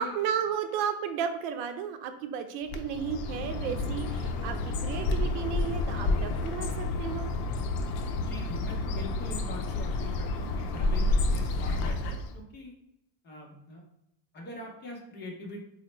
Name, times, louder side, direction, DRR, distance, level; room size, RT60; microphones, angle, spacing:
voice 1, 0.0-7.3, right 8 dB, 85° right, 7 dB, 0.6 m, -33 dB
Bird, 2.7-12.4, left 2 dB, 80° left, 0.6 m, -30 dB
voice 2, 8.2-12.7 13.2-13.8 14.3-15.7, left 1 dB, 25° left, -1 dB, 0.5 m, -43 dB
4.1 x 2.1 x 3.0 m, 0.85 s
cardioid pair, 160°, 49 cm